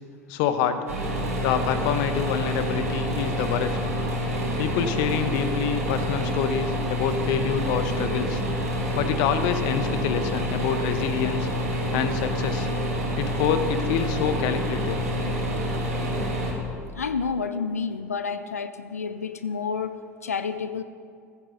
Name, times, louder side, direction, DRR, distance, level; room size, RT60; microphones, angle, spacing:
voice 1, 0.3-0.8 1.4-3.8 4.6-8.4 8.9-11.5 11.9-12.7 13.2-15.0, left 8 dB, 55° left, 9 dB, 1.1 m, -26 dB
sound 1, 0.9-16.5, equal, 75° right, 3.3 m, -27 dB
voice 2, 16.9-20.8, left 5 dB, 80° left, 11 dB, 0.5 m, -30 dB
16.0 x 14.0 x 4.0 m, 2.2 s
figure-of-eight pair, 70°, 8 cm